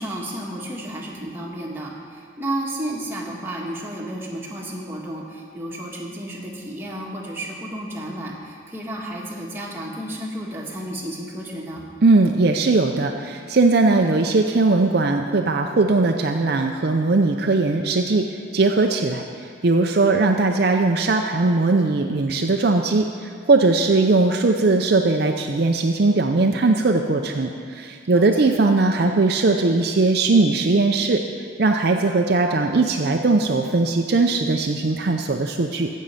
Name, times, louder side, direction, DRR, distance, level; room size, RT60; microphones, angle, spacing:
voice 1, 0.0-11.8 28.1-28.5, right 1 dB, 10° right, -3 dB, 1.5 m, -32 dB
voice 2, 12.0-18.3 18.5-31.2 31.6-35.9, right 3 dB, 55° right, 3 dB, 0.5 m, -19 dB
15.5 x 6.4 x 5.7 m, 2.1 s
head